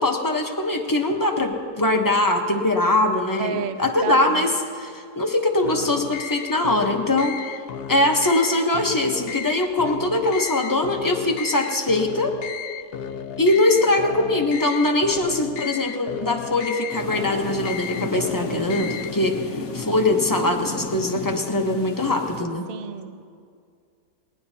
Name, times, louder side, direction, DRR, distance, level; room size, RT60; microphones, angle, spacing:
voice 1, 0.0-7.6 7.9-12.3 13.4-22.7, left 2 dB, 15° left, 2 dB, 0.8 m, -22 dB
voice 2, 3.4-4.6 13.5-13.8 22.7-23.2, right 7 dB, 60° right, 10 dB, 0.6 m, -32 dB
sound 1, 5.6-19.1, left 7 dB, 85° left, 1.2 m, -34 dB
sound 2, 16.9-22.4, left 4 dB, 55° left, 1.1 m, -33 dB
19.5 x 18.5 x 2.8 m, 2.2 s
omnidirectional pair, 1.6 m